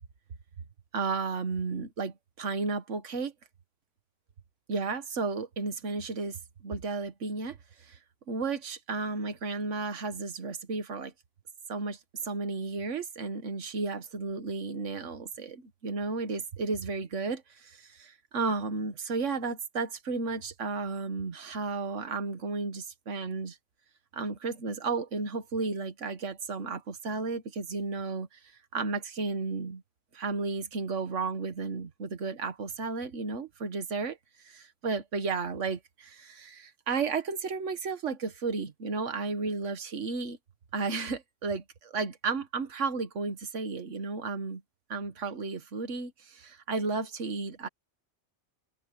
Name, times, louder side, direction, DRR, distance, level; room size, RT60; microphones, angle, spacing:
voice 1, 0.9-3.3 4.7-8.0 8.3-11.1 11.7-23.6 24.1-28.4 28.7-29.8 30.1-34.2 34.4-40.4 40.7-44.6 44.9-47.7, right 4 dB, 80° right, 1.7 m, -33 dB
omnidirectional pair, 1.2 m